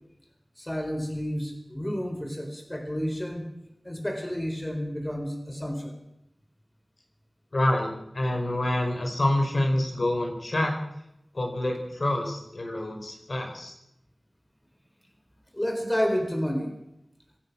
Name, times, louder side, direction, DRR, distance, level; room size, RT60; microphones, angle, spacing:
voice 1, 0.6-3.5 3.8-6.0 15.5-16.7, equal, 15° left, 4 dB, 4.5 m, -30 dB
voice 2, 7.5-10.8 11.3-13.7, left 1 dB, 60° left, 3 dB, 5.2 m, -27 dB
26.0 x 17.5 x 6.2 m, 0.81 s
wide cardioid pair, 70°, 0 cm